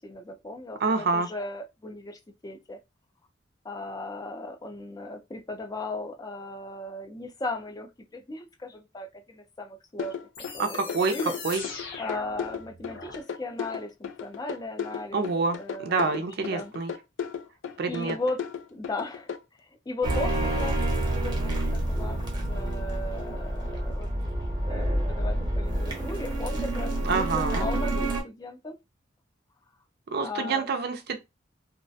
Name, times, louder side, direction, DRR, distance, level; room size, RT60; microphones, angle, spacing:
voice 1, 0.0-2.8 3.6-10.1 10.5-11.4 12.0-15.2 15.5-16.7 17.9-18.4 18.7-19.3 19.6-22.2 22.5-24.1 24.7-28.8 30.2-30.7, left 2 dB, 20° left, 0.4 m, -37 dB
voice 2, 0.8-1.3 10.6-11.1 11.4-11.6 15.1-16.9 17.8-18.2 27.0-27.7 30.1-31.2, right 4 dB, 60° right, 0.4 m, -27 dB
sound 1, 10.0-19.4, left 7 dB, 90° left, 0.3 m, -35 dB
sound 2, 10.3-13.2, left 4 dB, 70° left, 0.7 m, -40 dB
sound 3, 20.0-28.2, right 1 dB, 25° right, 0.7 m, -28 dB
2.3 x 2.1 x 2.6 m
head